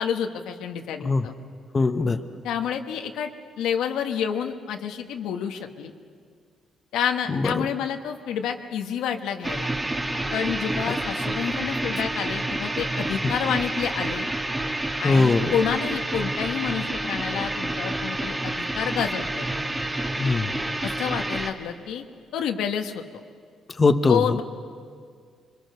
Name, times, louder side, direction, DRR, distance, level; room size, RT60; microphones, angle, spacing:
voice 1, 0.0-1.3 2.4-3.3 3.6-5.9 6.9-9.7 10.3-14.3 15.0-19.5 20.8-22.0 22.3-23.0 24.1-24.4, left 8 dB, 85° left, 5 dB, 1.4 m, -29 dB
voice 2, 1.7-2.2 7.3-7.7 13.2-13.3 15.0-15.5 20.2-20.5 23.8-24.4, left 3 dB, 30° left, 8 dB, 1.1 m, -21 dB
sound 1, 9.4-21.5, right 1 dB, 15° right, 2.1 m, -29 dB
26.0 x 23.0 x 6.8 m, 2.1 s
cardioid pair, 90°, 0 cm